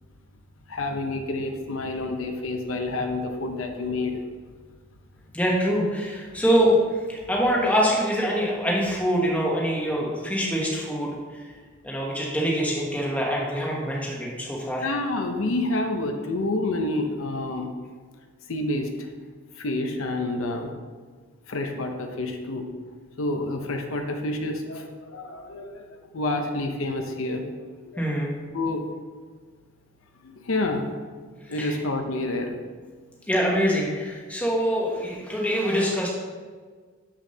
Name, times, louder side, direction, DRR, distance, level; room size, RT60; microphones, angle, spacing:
voice 1, 0.7-4.2 14.8-17.7 18.5-18.9 19.6-20.7 21.5-22.7 23.2-25.9 26.1-27.4 27.9-28.0 28.5-28.8 30.2-30.9 31.5-32.5, left 2 dB, 80° left, 4 dB, 0.7 m, -28 dB
voice 2, 5.3-6.8 7.1-11.4 11.8-14.9 28.0-28.3 31.6-31.8 33.3-36.1, equal, 5° left, -4 dB, 1.1 m, -24 dB
7.3 x 6.2 x 2.8 m, 1.6 s
head